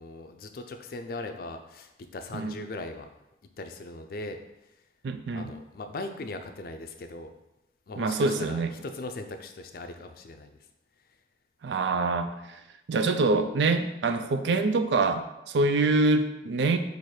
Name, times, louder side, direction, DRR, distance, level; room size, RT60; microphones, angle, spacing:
voice 1, 0.0-3.1 3.6-4.4 5.3-7.3 7.9-10.5 12.0-12.2, left 2 dB, 55° left, 6 dB, 0.4 m, -39 dB
voice 2, 5.0-5.5 8.0-8.7 11.6-12.6 12.9-16.8, right 3 dB, 80° right, 8 dB, 0.4 m, -25 dB
4.3 x 2.5 x 4.8 m, 0.93 s
head